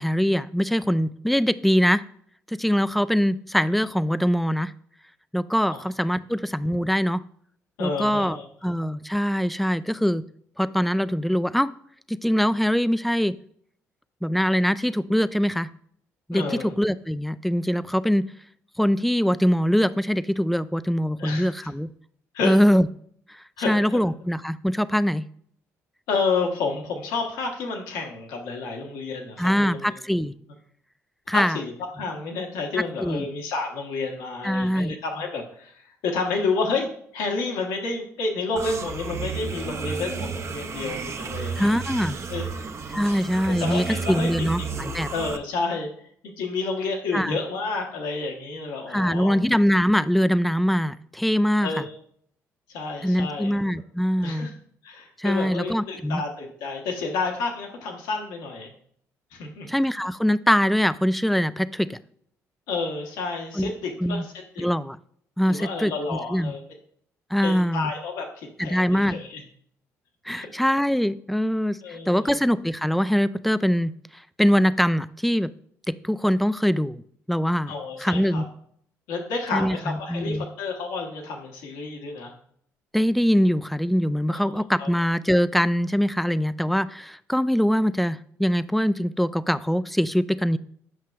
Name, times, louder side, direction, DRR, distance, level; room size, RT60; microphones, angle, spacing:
voice 1, 0.0-2.0 2.5-4.7 5.3-7.2 7.8-8.4 8.6-10.2 10.6-11.7 12.1-13.4 14.2-15.7 16.3-18.3 18.8-21.9 22.4-22.9 23.7-25.2 29.4-30.3 31.3-31.6 33.0-33.3 34.4-35.0 41.6-42.2 42.9-45.1 47.1-47.4 48.9-51.7 53.0-54.5 55.2-56.2 59.7-62.0 63.6-63.7 64.0-64.2 64.6-65.0 65.4-66.5 67.3-67.9 68.6-69.2 70.3-71.8 72.1-73.9 74.4-75.5 75.9-77.0 77.3-77.7 78.0-78.5 79.5-80.5 82.9-90.6, equal, ahead, 15 dB, 0.3 m, -23 dB
voice 2, 7.8-8.4 16.3-16.7 21.2-21.5 22.3-22.5 23.6-24.0 26.1-30.0 31.3-36.9 37.1-41.7 42.3-42.6 43.0-43.2 43.5-44.5 45.1-45.9 46.4-49.4 51.6-51.9 52.7-53.5 54.2-54.5 54.8-58.7 59.3-59.7 62.7-64.7 65.5-66.6 67.4-69.4 70.3-70.5 71.8-72.4 77.7-78.4 79.1-82.3 84.3-84.9, left 4 dB, 85° left, 1 dB, 1.2 m, -30 dB
sound 1, 38.6-45.4, right 5 dB, 45° right, 0.7 m, -32 dB
7.6 x 5.5 x 2.4 m, 0.64 s
supercardioid pair, 60°, 7 cm